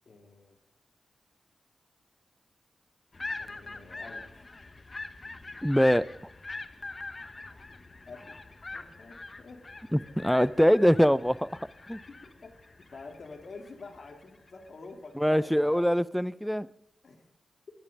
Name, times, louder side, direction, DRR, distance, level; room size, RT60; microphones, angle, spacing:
voice 1, 0.0-0.6 3.4-4.3 8.1-8.4 8.7-9.7 9.9-10.5 12.1-12.5 12.9-15.8 17.0-17.3, left 3 dB, 60° left, 4 dB, 3.2 m, -48 dB
sound 1, 3.1-14.7, left 3 dB, 35° left, 1.3 m, -43 dB
voice 2, 5.6-6.1 9.9-11.5 11.9-12.0 15.2-16.7, equal, ahead, 19 dB, 0.6 m, -23 dB
22.0 x 11.5 x 5.5 m, 0.74 s
cardioid pair, 70°, 0 cm